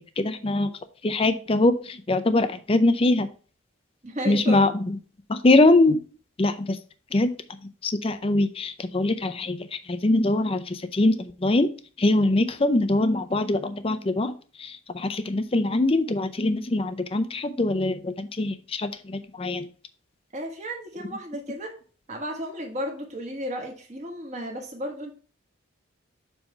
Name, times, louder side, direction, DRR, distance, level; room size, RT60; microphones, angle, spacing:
voice 1, 0.2-0.7 1.0-3.3 4.3-4.8 5.3-6.0 6.4-6.8 7.1-7.3 7.8-11.7 12.0-14.3 14.6-19.7, left 2 dB, 25° left, 11 dB, 0.5 m, -23 dB
voice 2, 4.0-4.7 20.3-21.8 22.1-25.1, equal, 35° right, 2 dB, 1.4 m, -33 dB
7.2 x 3.3 x 5.5 m, 0.39 s
head